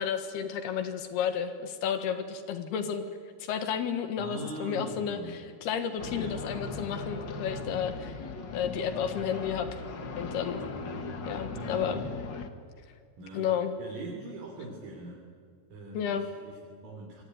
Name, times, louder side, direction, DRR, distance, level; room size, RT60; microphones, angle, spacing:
voice 1, 0.0-3.1 3.4-8.2 8.5-9.8 10.2-10.6 11.3-12.1 13.3-13.7 15.9-16.3, left 8 dB, 85° left, 8 dB, 3.6 m, -32 dB
voice 2, 4.2-5.5 6.1-6.4 6.7-6.8 11.5-12.1 13.2-13.5 13.8-15.3 15.7-17.2, right 2 dB, 60° right, 0 dB, 5.0 m, -42 dB
sound 1, 6.0-12.5, left 4 dB, 60° left, 1.1 m, -38 dB
27.5 x 22.5 x 9.6 m, 2.1 s
omnidirectional pair, 4.5 m